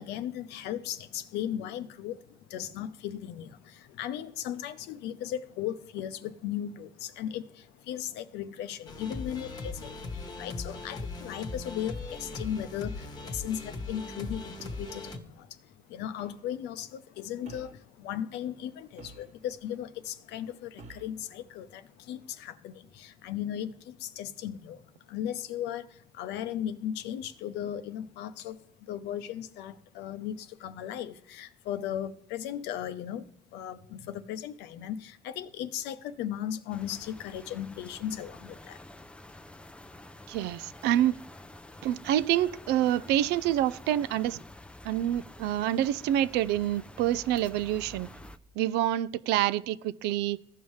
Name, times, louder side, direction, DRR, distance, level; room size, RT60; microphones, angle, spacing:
voice 1, 0.0-24.8 25.1-38.8, left 10 dB, 85° left, 0.6 m, -37 dB
sound 1, 8.9-15.2, left 3 dB, 25° left, 1.1 m, -39 dB
sound 2, 12.3-12.7 14.6-14.9 16.2-16.4 17.4-17.9 19.0-19.6 20.8-21.2, right 4 dB, 45° right, 1.0 m, -50 dB
sound 3, 36.7-48.4, left 1 dB, 5° left, 0.4 m, -49 dB
voice 2, 40.3-41.2 41.8-44.4 44.8-48.1 48.6-50.4, right 12 dB, 90° right, 0.4 m, -27 dB
15.5 x 5.5 x 3.1 m
cardioid pair, 110°, 17 cm